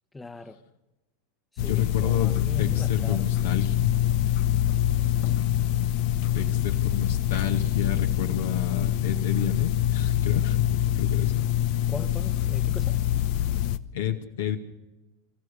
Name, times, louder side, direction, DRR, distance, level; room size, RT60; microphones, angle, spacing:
voice 1, 0.1-0.6 1.6-3.3 11.9-13.0, left 2 dB, 15° left, 1.2 m, -39 dB
sound 1, 1.6-13.8, left 12 dB, 60° left, 0.9 m, -25 dB
voice 2, 1.7-3.9 6.3-11.4 13.9-14.6, left 9 dB, 75° left, 2.1 m, -30 dB
26.0 x 15.0 x 6.8 m
hypercardioid pair, 90°, 0 cm